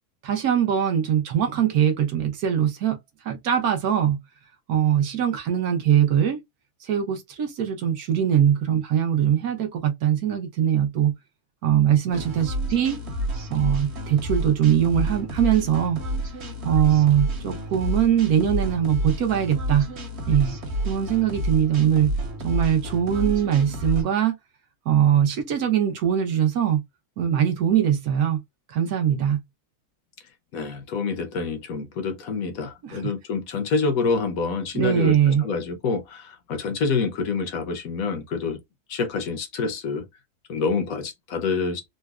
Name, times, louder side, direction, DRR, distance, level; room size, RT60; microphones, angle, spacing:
voice 1, 0.2-3.0 3.2-4.2 4.7-6.4 6.8-11.1 11.6-13.0 13.5-16.0 16.6-19.9 20.3-20.6 20.9-22.1 22.4-24.4 24.9-26.8 27.2-28.4 28.7-29.4 32.8-33.1 34.7-35.4, right 9 dB, 70° right, 1.2 m, -21 dB
sound 1, 12.1-24.0, equal, 50° right, 1.1 m, -30 dB
voice 2, 30.5-38.6 38.9-40.1 40.5-41.8, left 4 dB, 65° left, 1.1 m, -27 dB
3.8 x 2.2 x 2.3 m
omnidirectional pair, 1.7 m